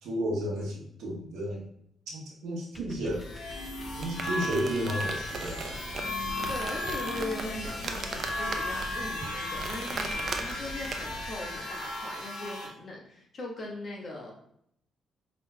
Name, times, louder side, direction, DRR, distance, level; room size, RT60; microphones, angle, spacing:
voice 1, 0.0-1.6 2.1-3.4 3.9-5.8, equal, 85° right, -2 dB, 1.0 m, -33 dB
sound 1, 2.7-12.3, equal, 20° left, 0.4 m, -48 dB
sound 2, 3.1-12.7, left 1 dB, 85° left, 0.8 m, -35 dB
sound 3, 3.8-11.3, right 4 dB, 55° right, 0.5 m, -39 dB
voice 2, 6.5-14.5, left 1 dB, 50° left, -2 dB, 1.2 m, -39 dB
5.3 x 3.1 x 2.2 m, 0.72 s
cardioid pair, 80°, 0 cm